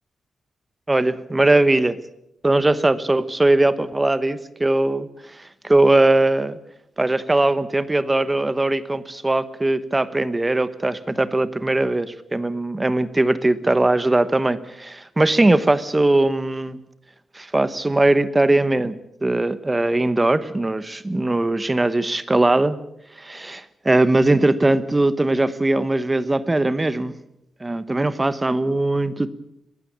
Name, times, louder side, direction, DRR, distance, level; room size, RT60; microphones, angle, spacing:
voice 1, 0.9-2.0 2.4-5.1 5.6-6.5 7.0-16.8 17.3-22.8 23.2-27.1 27.6-29.3, right 2 dB, 15° right, 14 dB, 1.0 m, -20 dB
21.5 x 15.5 x 8.7 m, 0.83 s
wide cardioid pair, 160°, 0 cm